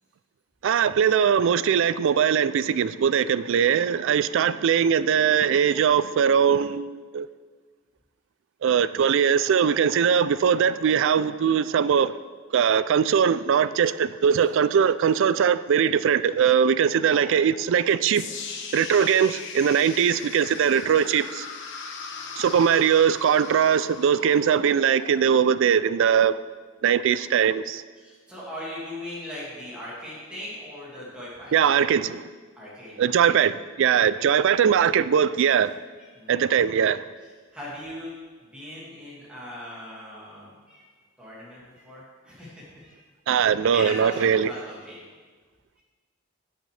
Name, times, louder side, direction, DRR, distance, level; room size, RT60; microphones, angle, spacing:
voice 1, 0.6-7.3 8.6-12.2 12.5-18.3 18.7-21.5 22.4-26.4 26.8-27.8 31.5-32.2 33.0-35.7 36.3-37.0 43.3-44.5, right 7 dB, 65° right, 0.3 m, -21 dB
voice 2, 14.3-14.6 17.0-17.4 28.0-31.5 32.6-32.9 33.2-33.3 34.1-34.5 36.0-36.5 37.5-38.1 38.5-40.8 41.2-43.0 43.5-45.0, left 1 dB, 5° right, 2.1 m, -39 dB
sound 1, 18.1-26.2, left 5 dB, 65° left, 1.1 m, -39 dB
16.0 x 6.5 x 3.3 m
head